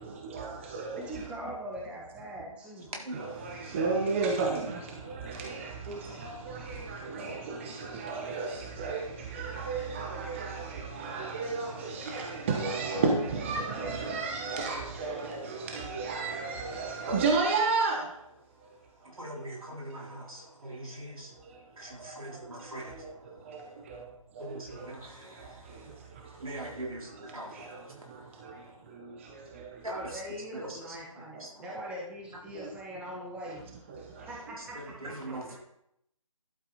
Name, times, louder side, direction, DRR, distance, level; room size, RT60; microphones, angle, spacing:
voice 1, 0.0-1.2 3.1-18.1 22.8-23.1 23.5-23.6 23.9-24.0 24.8-24.9 27.5-27.8 28.4-28.6 29.0-29.1 29.6-29.7 30.0-30.1 32.6-32.7 33.9-34.0, right 4 dB, 20° right, 1.0 m, -32 dB
voice 2, 1.0-2.9 25.2-25.3 25.7-26.1 29.9-33.6 34.2-34.9, equal, 5° right, 1.4 m, -42 dB
voice 3, 2.9-3.8 5.0-5.3 5.9-7.2 17.1-17.2 18.5-24.0 24.4-28.8 29.8-31.9 33.5-33.6 34.1-34.3 34.6-35.6, right 1 dB, 80° right, 3.9 m, -44 dB
11.5 x 8.3 x 4.2 m
figure-of-eight pair, 160°, 18 cm